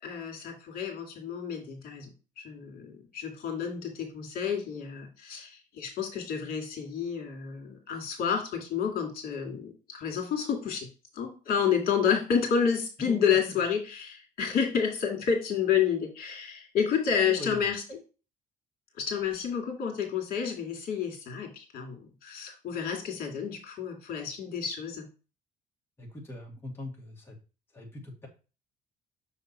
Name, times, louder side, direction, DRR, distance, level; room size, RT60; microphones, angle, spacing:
voice 1, 0.0-10.9 11.1-18.0 19.0-25.1, left 7 dB, 60° left, 1 dB, 2.4 m, -30 dB
voice 2, 17.2-17.6 26.0-27.4 27.7-28.3, left 1 dB, 15° left, -1 dB, 1.8 m, -41 dB
6.7 x 3.6 x 4.3 m, 0.34 s
cardioid pair, 110°, 17 cm